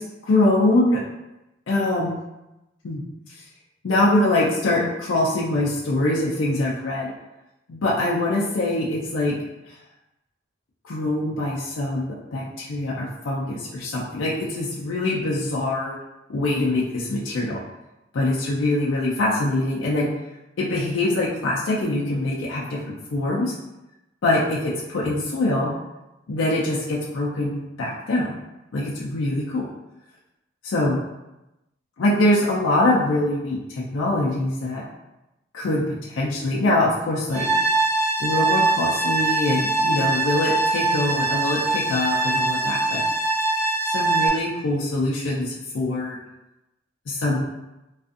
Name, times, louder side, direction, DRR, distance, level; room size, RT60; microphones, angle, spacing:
voice 1, 0.3-1.0 1.7-2.2 2.8-3.0 3.8-7.1 7.7-9.3 10.8-15.9 16.3-17.6 18.1-20.1 20.6-23.5 24.2-25.7 26.3-28.3 28.7-29.7 30.6-31.0 32.0-34.8 35.5-37.5 38.2-43.0 43.9-46.2 47.1-47.4, left 2 dB, 80° left, -5 dB, 0.5 m, -23 dB
sound 1, 37.3-44.3, right 2 dB, 35° right, 0.7 m, -22 dB
2.5 x 2.4 x 2.4 m, 0.95 s
head